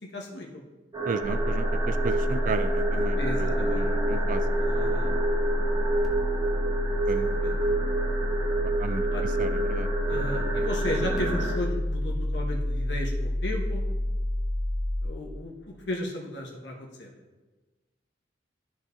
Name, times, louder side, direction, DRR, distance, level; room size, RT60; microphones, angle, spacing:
voice 1, 0.1-0.6 3.2-3.9 4.6-5.1 7.1-7.7 9.1-9.2 10.1-13.8 15.0-17.1, left 1 dB, 70° left, -1 dB, 1.3 m, -35 dB
sound 1, 0.9-11.6, right 2 dB, 25° right, 1.7 m, -29 dB
voice 2, 1.1-3.2 3.7-4.4 7.1-7.8 8.8-9.0 9.4-9.9, right 4 dB, 50° right, 12 dB, 0.3 m, -34 dB
sound 2, 1.2-15.0, equal, 5° right, 1.0 m, -28 dB
13.0 x 4.9 x 2.8 m, 1.2 s
head